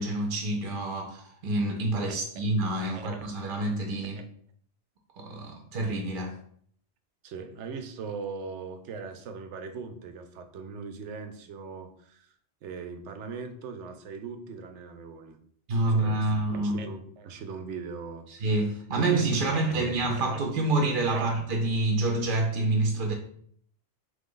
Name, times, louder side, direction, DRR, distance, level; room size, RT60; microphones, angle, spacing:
voice 1, 0.0-4.2 5.2-6.4 15.7-16.8 18.4-23.1, right 2 dB, 55° right, 0.7 m, -27 dB
voice 2, 7.2-12.3 12.6-15.4 15.8-18.7 19.0-19.9 21.1-21.3, right 5 dB, 85° right, 0.9 m, -40 dB
3.8 x 3.1 x 3.7 m
omnidirectional pair, 1.2 m